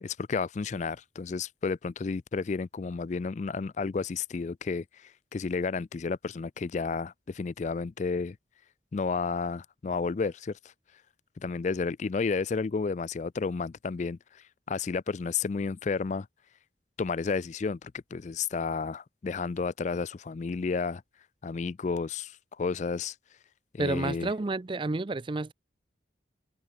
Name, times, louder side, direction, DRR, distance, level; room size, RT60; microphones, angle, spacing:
voice 1, 0.0-8.4 8.9-10.6 11.4-14.2 14.7-16.3 17.0-21.0 21.4-23.1 23.7-24.3, left 4 dB, 40° left, 0.3 m, -31 dB
voice 2, 23.8-25.5, right 2 dB, 25° right, 0.4 m, -30 dB
head